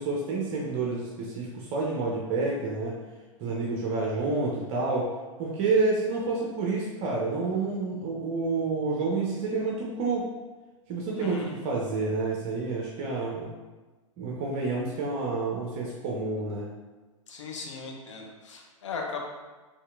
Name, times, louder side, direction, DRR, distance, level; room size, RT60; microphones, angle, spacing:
voice 1, 0.0-2.9 3.4-5.1 5.4-10.3 10.9-13.5 14.2-16.7, right 3 dB, 35° right, -3 dB, 0.7 m, -29 dB
voice 2, 11.2-11.6 17.3-19.2, left 5 dB, 65° left, 0 dB, 0.8 m, -38 dB
4.3 x 3.2 x 2.5 m, 1.2 s
figure-of-eight pair, 100°, 17 cm